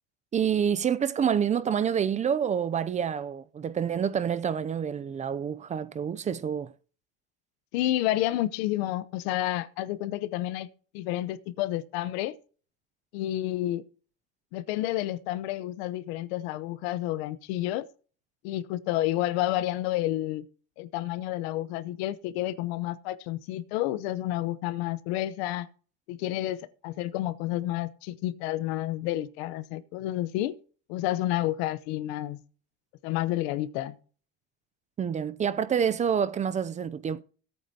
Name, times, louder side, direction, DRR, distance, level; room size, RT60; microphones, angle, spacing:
voice 1, 0.3-6.7 35.0-37.2, right 8 dB, 25° right, 0.5 m, -27 dB
voice 2, 7.7-10.7 10.9-12.3 13.1-13.8 14.5-17.8 18.4-20.4 20.8-25.7 26.1-30.6 30.9-32.4 33.0-34.0, left 14 dB, 85° left, 0.9 m, -30 dB
17.5 x 8.7 x 2.8 m
cardioid pair, 135°, 31 cm